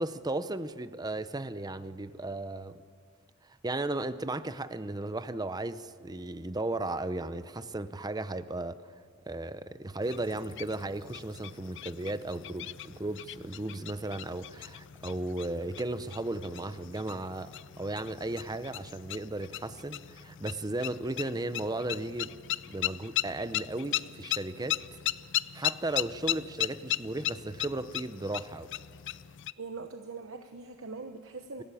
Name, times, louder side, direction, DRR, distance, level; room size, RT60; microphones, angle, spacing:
voice 1, 0.0-2.8 3.6-8.8 9.3-17.5 17.8-22.4 22.7-24.8 25.5-28.7, right 2 dB, 20° right, 13 dB, 0.7 m, -35 dB
sound 1, 10.0-29.5, left 13 dB, 60° left, 0.5 m, -37 dB
voice 2, 29.6-31.6, right 4 dB, 65° right, 6 dB, 1.1 m, -42 dB
25.5 x 17.5 x 8.5 m, 2.1 s
head